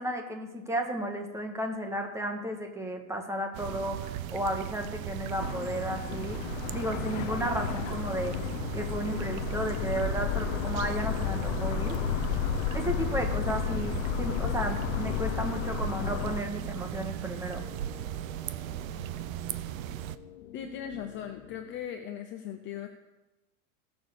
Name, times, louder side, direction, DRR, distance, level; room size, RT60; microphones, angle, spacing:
voice 1, 0.0-6.4 6.7-8.4 8.7-12.2 12.7-17.6, right 1 dB, 5° right, 3 dB, 1.6 m, -33 dB
sound 1, 3.5-20.2, right 12 dB, 70° right, 0.9 m, -37 dB
sound 2, 5.4-16.4, left 9 dB, 60° left, 1.0 m, -32 dB
sound 3, 6.9-21.8, left 9 dB, 85° left, 1.5 m, -49 dB
voice 2, 20.5-22.9, left 9 dB, 25° left, 6 dB, 0.7 m, -38 dB
18.0 x 7.1 x 6.8 m, 1.0 s
supercardioid pair, 155°, 42 cm